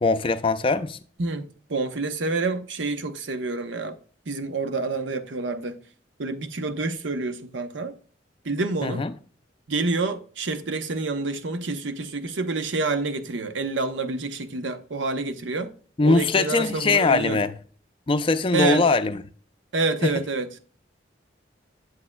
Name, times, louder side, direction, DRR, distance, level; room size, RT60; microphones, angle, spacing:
voice 1, 0.0-1.0 8.8-9.1 16.0-17.5 18.1-19.2 20.0-20.2, left 3 dB, 30° left, 0.4 m, -21 dB
voice 2, 1.2-4.0 4.3-5.8 6.2-7.9 8.4-9.0 9.7-15.7 16.0-17.4 18.5-18.9 19.7-20.5, right 3 dB, 85° right, 0.8 m, -28 dB
8.5 x 7.6 x 2.2 m
head